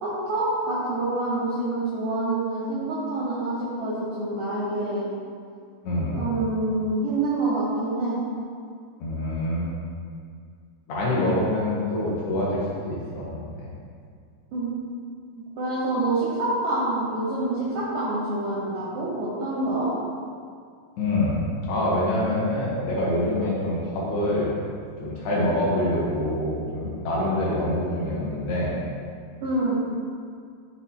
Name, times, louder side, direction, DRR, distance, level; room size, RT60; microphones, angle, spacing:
voice 1, 0.0-5.1 6.1-8.2 14.5-14.7 15.6-19.9 29.4-29.8, right 2 dB, 75° right, -8 dB, 2.0 m, -26 dB
voice 2, 5.8-6.2 9.0-9.7 10.9-13.7 21.0-24.6 25.0-28.7, left 1 dB, 70° left, -6 dB, 2.8 m, -25 dB
11.0 x 3.9 x 2.8 m, 2.2 s
omnidirectional pair, 5.1 m